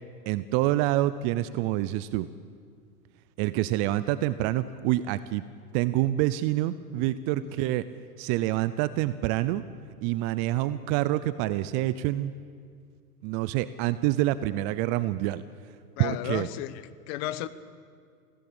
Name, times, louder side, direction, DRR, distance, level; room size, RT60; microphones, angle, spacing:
voice 1, 0.3-2.3 3.4-5.4 5.7-7.9 8.2-9.6 10.0-12.3 13.2-15.4 16.0-16.5, right 15 dB, 30° right, 0.5 m, -27 dB
voice 2, 16.0-17.5, left 14 dB, 40° left, 1.0 m, -34 dB
25.0 x 16.5 x 8.7 m
hypercardioid pair, 125°, 46 cm